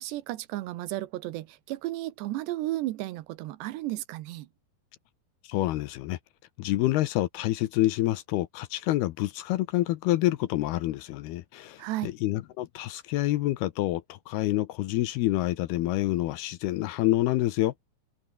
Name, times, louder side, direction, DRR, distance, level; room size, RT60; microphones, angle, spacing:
voice 1, 0.0-4.5 11.8-12.1, right 16 dB, 80° right, 3.1 m, -33 dB
voice 2, 5.4-6.2 6.6-17.7, left 16 dB, 75° left, 2.6 m, -27 dB
omnidirectional pair, 5.0 m